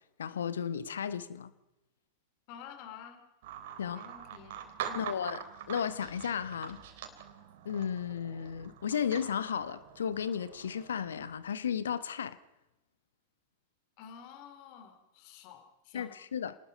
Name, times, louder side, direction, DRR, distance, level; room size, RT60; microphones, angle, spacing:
voice 1, 0.2-1.5 3.8-4.1 4.9-6.8 7.6-12.4 15.9-16.6, left 8 dB, 65° left, 1.1 m, -34 dB
voice 2, 2.5-3.2 3.8-4.6 4.9-5.2 14.0-16.1, left 8 dB, 45° left, 2.8 m, -50 dB
sound 1, 3.4-11.3, right 9 dB, 50° right, 3.4 m, -45 dB
28.0 x 19.5 x 5.4 m
figure-of-eight pair, 90°, 0 cm